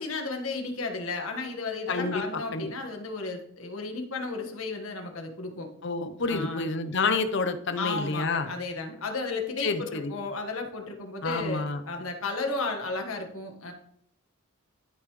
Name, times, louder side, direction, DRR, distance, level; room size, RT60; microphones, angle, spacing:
voice 1, 0.0-5.7 6.3-6.7 7.8-13.7, left 3 dB, 80° left, 3 dB, 1.6 m, -33 dB
voice 2, 1.9-2.7 5.8-8.5 9.6-10.2 11.2-11.8, left 3 dB, 60° left, 10 dB, 0.8 m, -29 dB
12.5 x 5.5 x 3.2 m, 0.66 s
head